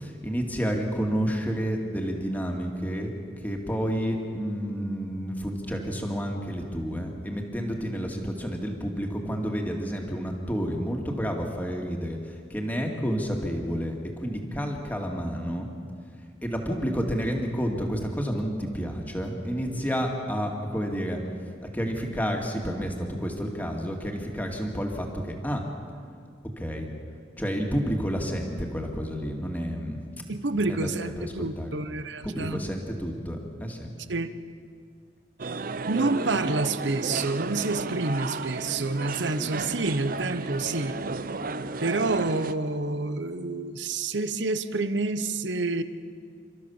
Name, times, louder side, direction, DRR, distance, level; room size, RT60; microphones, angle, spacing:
voice 1, 0.0-3.1 3.4-15.7 16.4-21.2 21.6-25.6 26.6-26.9 27.4-30.0 30.6-30.9 31.2-31.7 32.2-33.9, equal, 10° left, 1 dB, 2.4 m, -30 dB
voice 2, 30.3-32.6 34.1-34.3 35.9-41.0 41.8-45.8, right 3 dB, 75° right, 11 dB, 1.0 m, -28 dB
sound 1, 35.4-42.5, right 3 dB, 50° right, 0.7 m, -33 dB
29.0 x 13.5 x 7.2 m, 2.2 s
head